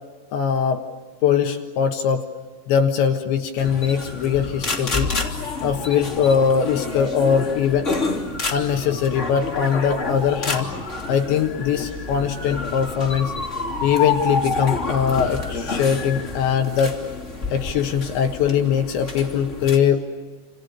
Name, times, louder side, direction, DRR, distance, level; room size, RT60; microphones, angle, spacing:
voice 1, 0.3-0.8 1.2-2.2 2.7-5.1 5.6-7.9 8.5-10.7 11.1-13.3 13.8-17.0 17.5-20.0, left 7 dB, 70° left, 5 dB, 3.5 m, -21 dB
sound 1, 3.6-19.8, left 3 dB, 20° left, 2.4 m, -29 dB
29.5 x 28.5 x 6.8 m, 1.4 s
omnidirectional pair, 5.8 m